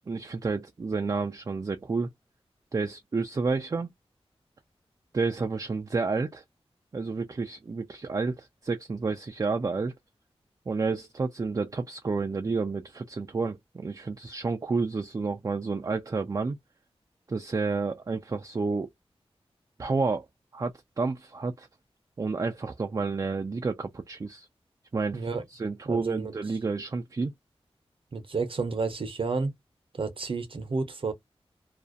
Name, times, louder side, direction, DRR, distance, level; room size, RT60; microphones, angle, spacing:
voice 1, 0.1-2.1 2.7-3.9 5.1-6.4 6.9-9.9 10.7-16.6 17.3-18.9 19.8-20.3 20.5-21.7 22.2-24.5 24.9-27.3, right 4 dB, 35° right, 0.4 m, -30 dB
voice 2, 25.1-25.4 25.8-26.4 28.1-29.5 29.9-31.1, right 4 dB, 60° right, 0.8 m, -31 dB
2.4 x 2.1 x 2.5 m
wide cardioid pair, 75°, 11 cm